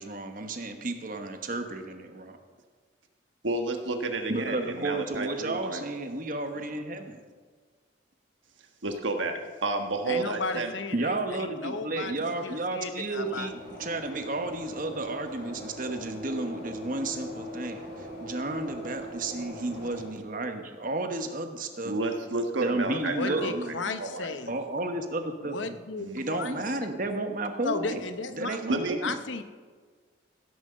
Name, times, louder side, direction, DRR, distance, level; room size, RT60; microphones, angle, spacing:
voice 1, 0.0-2.4 4.3-7.2 10.9-21.9 22.6-23.8 24.5-25.8 26.1-28.0 28.4-29.2, right 2 dB, 45° right, 6 dB, 1.1 m, -32 dB
voice 2, 3.4-5.8 8.8-10.7 21.8-24.3 26.0-26.2 28.7-29.0, right 2 dB, 80° right, 5 dB, 1.3 m, -31 dB
voice 3, 10.1-13.5 22.9-24.6 25.4-26.6 27.6-29.4, left 4 dB, 75° left, 10 dB, 0.8 m, -35 dB
sound 1, 13.2-20.0, equal, 60° left, 4.3 m, -40 dB
16.0 x 6.3 x 6.6 m, 1.5 s
head